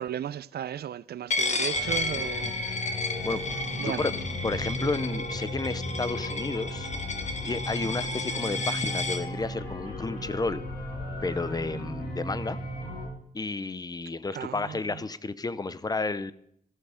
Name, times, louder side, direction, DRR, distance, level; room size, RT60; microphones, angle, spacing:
voice 1, 0.0-2.5 3.8-4.1 14.3-14.8, right 10 dB, 80° right, 0.5 m, -35 dB
Coin (dropping), 1.3-9.2, left 2 dB, 45° left, 1.2 m, -32 dB
sound 1, 1.7-13.1, left 1 dB, 85° left, 4.3 m, -35 dB
voice 2, 3.2-4.1 4.4-6.9 7.4-10.6 11.2-12.6 13.3-16.3, left 3 dB, 25° left, 0.6 m, -32 dB
14.0 x 12.5 x 5.0 m
wide cardioid pair, 120°, 16 cm